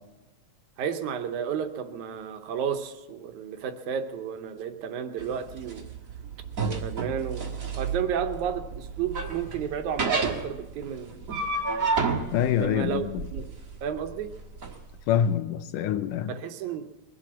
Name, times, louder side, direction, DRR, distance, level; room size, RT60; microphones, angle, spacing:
voice 1, 0.8-5.8 6.7-11.2 12.6-13.5 13.8-14.3 16.3-16.9, right 8 dB, 75° right, 2.3 m, -32 dB
sound 1, 5.2-14.7, right 4 dB, 40° right, 1.3 m, -31 dB
voice 2, 12.3-13.2 15.1-16.3, left 9 dB, 90° left, 2.4 m, -25 dB
22.0 x 7.7 x 7.3 m
omnidirectional pair, 3.6 m